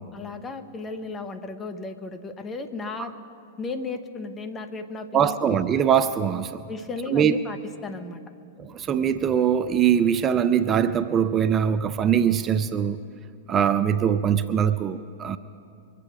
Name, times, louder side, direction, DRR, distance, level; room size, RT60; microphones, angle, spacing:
voice 1, 0.1-3.1 3.6-5.4 6.7-8.2, left 3 dB, 20° left, 7 dB, 1.0 m, -34 dB
voice 2, 5.1-6.6 7.1-7.3 8.6-13.0 13.5-15.4, right 8 dB, 25° right, 12 dB, 0.4 m, -22 dB
23.0 x 8.4 x 6.1 m, 2.5 s
figure-of-eight pair, 105°, 0 cm